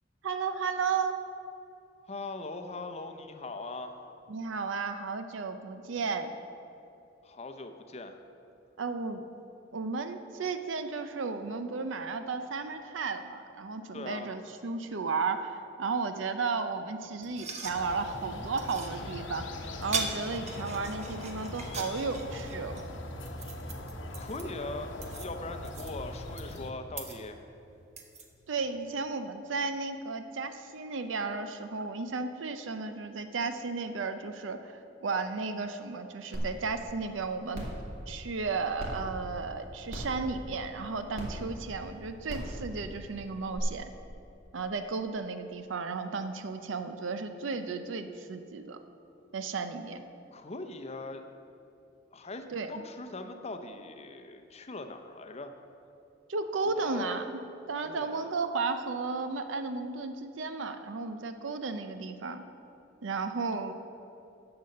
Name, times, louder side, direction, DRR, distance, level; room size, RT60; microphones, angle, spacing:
voice 1, 0.2-1.2 4.3-6.3 8.8-9.2 9.7-19.5 19.8-22.8 28.5-37.7 38.1-43.9 44.5-48.8 49.3-50.0 52.5-52.7 56.3-57.4 57.7-62.4 63.0-63.7, right 4 dB, 80° right, 8 dB, 0.6 m, -34 dB
voice 2, 2.1-4.0 7.2-8.2 13.9-14.3 24.1-27.4 50.3-51.2 52.1-55.5 56.7-57.3 57.8-58.3, left 2 dB, 35° left, 7 dB, 0.7 m, -41 dB
sound 1, 17.2-28.6, right 4 dB, 35° right, 1.0 m, -42 dB
sound 2, 17.6-26.7, left 1 dB, 70° left, 0.9 m, -41 dB
sound 3, 36.3-36.4 36.9-37.0 37.5-37.8 38.8-38.9 39.9-40.2 41.1-41.2 42.3-42.5 43.5-43.6, equal, 55° right, 2.6 m, -37 dB
10.5 x 6.9 x 6.6 m, 2.7 s
head